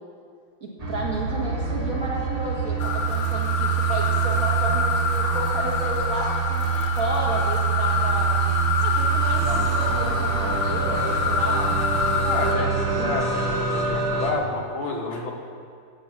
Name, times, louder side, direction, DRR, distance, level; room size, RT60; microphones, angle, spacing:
voice 1, 0.6-8.3 8.8-11.7 12.0-13.2, right 1 dB, 45° right, -3 dB, 2.4 m, -32 dB
sound 1, 0.8-14.3, right 7 dB, 25° right, 1.0 m, -25 dB
sound 2, 2.8-12.5, left 5 dB, 55° left, 1.4 m, -26 dB
voice 2, 12.2-12.7 13.0-15.3, left 2 dB, 90° left, -1 dB, 2.6 m, -29 dB
13.0 x 8.6 x 6.1 m, 2.2 s
omnidirectional pair, 2.2 m